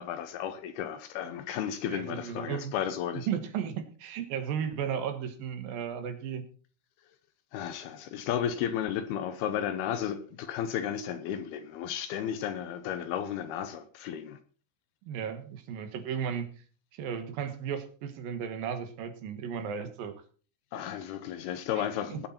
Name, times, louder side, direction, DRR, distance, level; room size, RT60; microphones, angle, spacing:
voice 1, 0.0-3.3 7.5-14.4 20.7-22.3, left 9 dB, 75° left, 2.4 m, -33 dB
voice 2, 1.9-2.7 3.3-6.4 15.1-16.5 16.9-20.1 21.8-22.2, right 8 dB, 65° right, 2.6 m, -35 dB
19.0 x 8.2 x 4.4 m
omnidirectional pair, 5.4 m